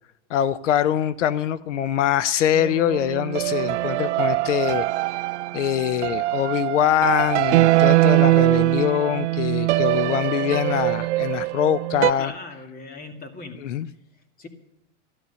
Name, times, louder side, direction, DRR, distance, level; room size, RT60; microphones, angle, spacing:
voice 1, 0.3-4.9 5.5-12.3 13.6-13.9, left 10 dB, 85° left, 16 dB, 0.7 m, -23 dB
sound 1, 2.5-12.1, right 18 dB, 70° right, 0.6 m, -22 dB
voice 2, 12.1-13.6 14.1-14.5, left 3 dB, 25° left, 6 dB, 2.4 m, -39 dB
13.0 x 12.0 x 6.9 m, 0.86 s
hypercardioid pair, 125°, 35 cm